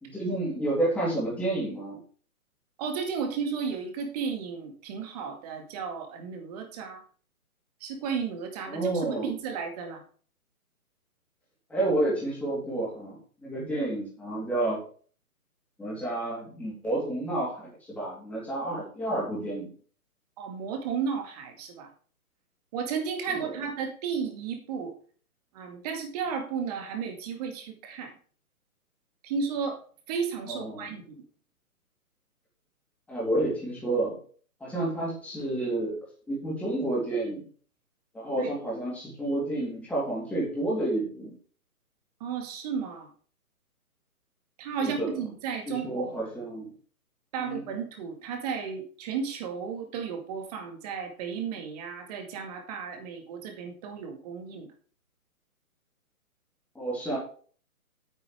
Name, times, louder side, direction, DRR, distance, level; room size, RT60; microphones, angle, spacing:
voice 1, 0.0-2.0 8.7-9.3 11.7-14.8 15.8-19.7 23.3-23.5 30.5-30.9 33.1-34.2 34.6-37.4 38.1-41.3 44.8-45.2 45.7-46.7 47.4-47.6 56.8-57.2, right 2 dB, 5° left, -6 dB, 3.4 m, -30 dB
voice 2, 2.8-7.0 7.8-10.0 20.4-21.9 22.7-24.9 25.5-28.2 29.2-29.8 30.1-31.0 38.4-38.5 42.2-43.1 44.6-46.3 47.3-54.7, right 6 dB, 25° right, 5 dB, 2.3 m, -33 dB
8.8 x 8.5 x 4.8 m, 0.42 s
figure-of-eight pair, 135°, 44 cm